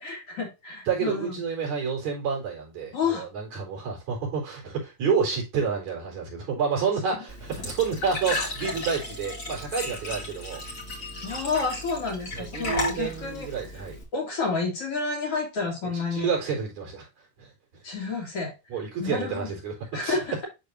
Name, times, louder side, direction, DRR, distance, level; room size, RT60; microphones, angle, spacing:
voice 1, 0.0-1.3 2.9-3.3 11.2-13.5 14.1-16.3 17.8-18.5 19.0-19.5 19.9-20.5, left 4 dB, 50° left, 3.1 m, -30 dB
voice 2, 0.9-10.6 12.3-14.0 15.9-17.1 17.4-17.5 18.7-20.2, right 6 dB, 65° right, 5.1 m, -29 dB
Glass / Trickle dribble / Fill (with liquid), 7.3-14.0, left 2 dB, 30° left, 2.2 m, -34 dB
12.0 x 4.0 x 2.6 m
omnidirectional pair, 3.5 m